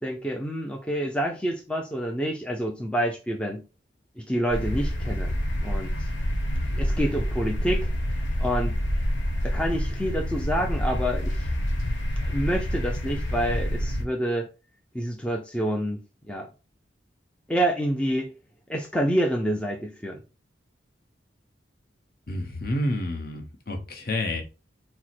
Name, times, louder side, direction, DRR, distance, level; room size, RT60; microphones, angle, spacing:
voice 1, 0.0-3.6 4.2-5.3 5.6-6.1 6.7-7.9 8.4-8.8 9.4-11.5 12.2-14.5 14.9-16.0 16.3-16.5 17.5-18.3 18.7-20.2, equal, 5° left, 0.4 m, -27 dB
sound 1, 4.5-14.0, equal, 85° left, 1.1 m, -27 dB
voice 2, 22.3-24.4, left 1 dB, 50° left, 0.9 m, -29 dB
4.6 x 2.1 x 4.2 m
head